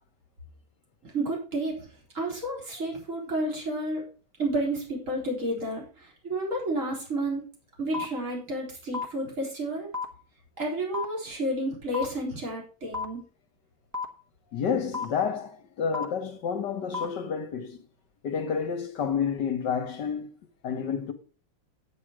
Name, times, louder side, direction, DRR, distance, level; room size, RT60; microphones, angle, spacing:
voice 1, 1.0-1.9 2.1-4.0 4.4-5.8 6.2-7.4 7.8-9.9 10.6-13.2, right 1 dB, 35° right, 4.3 m, -31 dB
sound 1, 7.9-8.0 8.9-9.0 9.9-10.0 10.9-11.0 11.9-12.0 12.9-13.0 13.9-14.0 14.9-15.0 15.9-16.0 16.9-17.0, left 5 dB, 15° right, 0.6 m, -30 dB
voice 2, 14.5-17.8 18.2-20.3 20.6-21.1, left 7 dB, 60° left, 1.6 m, -29 dB
9.3 x 8.9 x 4.7 m
omnidirectional pair, 2.3 m